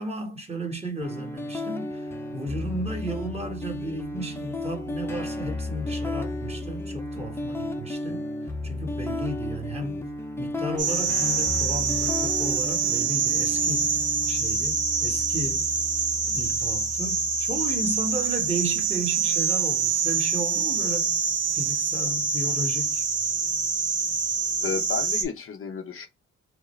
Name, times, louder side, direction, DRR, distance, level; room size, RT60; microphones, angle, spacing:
voice 1, 0.0-8.2 8.6-10.1 10.4-14.0 14.3-15.7 16.3-21.2 21.5-23.0, right 1 dB, 20° right, 1.4 m, -34 dB
sound 1, 1.0-19.0, left 2 dB, 10° left, 0.7 m, -34 dB
sound 2, 10.8-25.2, right 5 dB, 50° right, 1.0 m, -25 dB
voice 2, 24.6-26.1, left 6 dB, 45° left, 0.8 m, -32 dB
4.8 x 2.2 x 3.2 m
cardioid pair, 90°, 30 cm